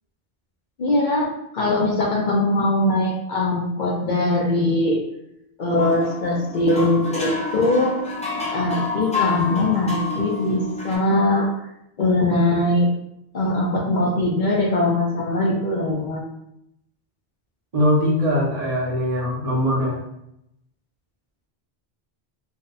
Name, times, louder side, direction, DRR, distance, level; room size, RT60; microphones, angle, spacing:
voice 1, 0.8-1.3 1.5-5.0 5.6-8.0 8.5-11.5 12.0-12.9 13.3-16.2, left 2 dB, 55° left, -2 dB, 0.7 m, -21 dB
sound 1, 5.8-10.9, left 4 dB, 10° left, 0.5 m, -29 dB
voice 2, 17.7-20.0, equal, 45° right, -4 dB, 0.7 m, -21 dB
2.6 x 2.2 x 3.9 m, 0.80 s
omnidirectional pair, 1.1 m